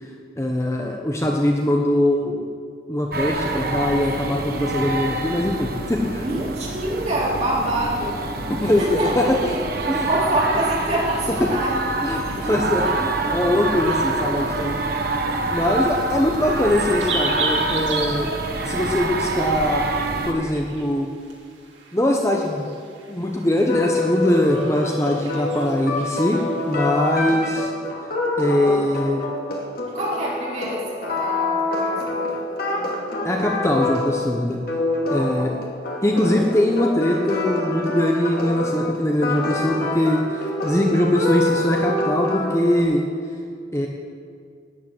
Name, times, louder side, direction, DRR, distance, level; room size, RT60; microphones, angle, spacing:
voice 1, 0.4-2.5 2.9-6.2 8.5-9.6 9.9-10.1 11.4-11.5 12.0-14.8 15.5-18.3 18.6-19.9 20.3-21.1 21.9-22.7 23.1-26.4 26.6-27.7 28.4-29.3 33.2-34.6 35.1-35.6 36.0-43.1 43.7-43.9, left 1 dB, 15° left, 0 dB, 1.1 m, -22 dB
sound 1, 3.1-20.3, right 2 dB, 55° right, 1.4 m, -26 dB
voice 2, 6.2-9.3 10.1-11.8 12.1-12.6 12.8-12.9 13.9-14.0 14.5-14.8 15.5-15.7 27.2-27.3 29.9-33.0 35.0-35.5, right 1 dB, 35° right, -5 dB, 4.3 m, -27 dB
sound 2, 13.2-27.2, right 3 dB, 85° right, 2.7 m, -36 dB
sound 3, 23.7-42.8, left 2 dB, 55° left, 2.6 m, -26 dB
12.5 x 10.5 x 9.0 m, 2.2 s
head